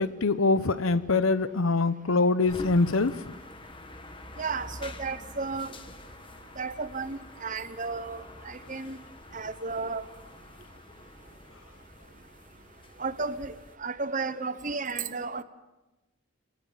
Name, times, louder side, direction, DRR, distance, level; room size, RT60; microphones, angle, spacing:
voice 1, 0.0-3.1, left 3 dB, 85° left, 14 dB, 1.0 m, -24 dB
sound 1, 2.5-13.8, left 2 dB, 25° left, 1.3 m, -47 dB
voice 2, 4.4-5.7 6.6-9.0 9.3-10.0 13.0-13.5 13.8-15.4, right 4 dB, 40° right, 13 dB, 1.0 m, -33 dB
24.0 x 19.5 x 7.5 m, 1.1 s
head